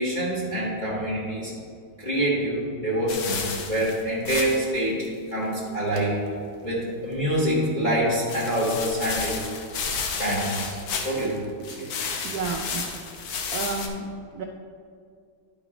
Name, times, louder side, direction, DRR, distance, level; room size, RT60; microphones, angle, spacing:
voice 1, 0.0-1.5 2.0-5.0 5.3-6.2 6.6-9.3 10.2-10.8 11.0-11.4 11.8-11.9, right 1 dB, 25° left, -6 dB, 1.4 m, -26 dB
sound 1, 3.1-4.8 5.0-5.1 5.5-5.6 5.9-6.0 8.3-11.4 11.6-13.9, left 5 dB, 75° left, 1.6 m, -32 dB
voice 2, 12.2-12.9 13.5-14.4, right 4 dB, 75° right, 1 dB, 0.9 m, -31 dB
11.5 x 4.1 x 4.9 m, 2.2 s
omnidirectional pair, 2.3 m